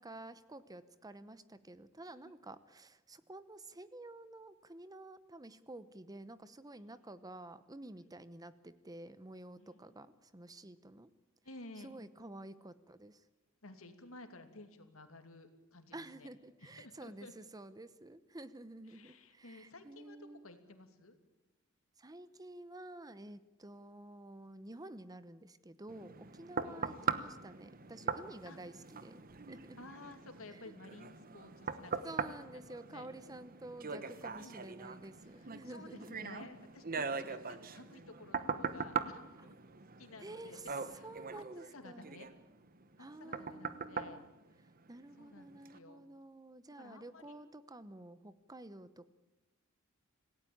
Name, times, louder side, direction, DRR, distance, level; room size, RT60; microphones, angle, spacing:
voice 1, 0.0-11.1 11.8-13.2 15.9-20.5 22.0-29.2 29.5-29.8 30.5-30.6 32.0-36.3 40.2-40.7 41.0-42.1 43.0-44.2 44.9-49.1, right 2 dB, 20° right, 14 dB, 0.9 m, -51 dB
voice 2, 9.6-10.2 11.4-12.0 13.6-16.3 16.6-17.3 18.8-21.2 26.6-27.1 28.4-28.6 29.8-33.1 34.4-34.6 35.2-39.6 40.0-40.6 40.9-41.1 41.3-41.4 41.7-42.3 43.0-44.2 45.2-46.0 46.8-47.4 47.7-47.9, left 2 dB, 70° left, 7 dB, 2.7 m, -54 dB
sound 1, 25.9-45.2 45.7-45.8, right 5 dB, 45° right, 1.2 m, -41 dB
27.0 x 17.5 x 8.7 m, 1.0 s
head